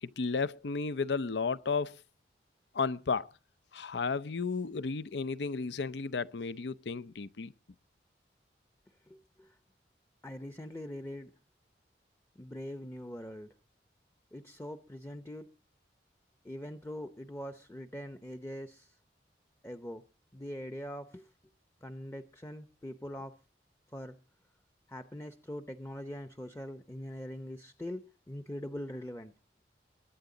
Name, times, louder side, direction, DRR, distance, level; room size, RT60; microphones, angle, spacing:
voice 1, 0.0-2.0 2.7-3.3 3.7-7.5, left 4 dB, 80° left, 0.6 m, -33 dB
voice 2, 9.1-9.5 10.2-11.3 12.4-13.5 14.3-15.5 16.4-19.0 19.6-20.0 20.3-21.3 21.8-23.4 23.9-24.2 24.9-29.3, equal, 15° left, 0.7 m, -42 dB
22.5 x 9.0 x 3.9 m
head